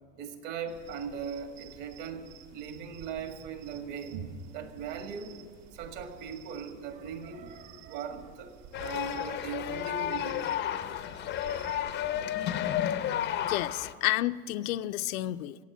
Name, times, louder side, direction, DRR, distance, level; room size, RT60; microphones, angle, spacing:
voice 1, 0.1-5.4 5.7-10.4, right 6 dB, 50° right, 6 dB, 1.9 m, -39 dB
sound 1, 0.7-12.5, right 9 dB, 75° right, 2.2 m, -53 dB
sound 2, 8.7-13.9, left 10 dB, 25° left, 0.5 m, -32 dB
voice 2, 13.5-15.6, left 15 dB, 80° left, 11 dB, 0.6 m, -30 dB
16.0 x 8.1 x 9.4 m, 2.1 s
supercardioid pair, 130°, 42 cm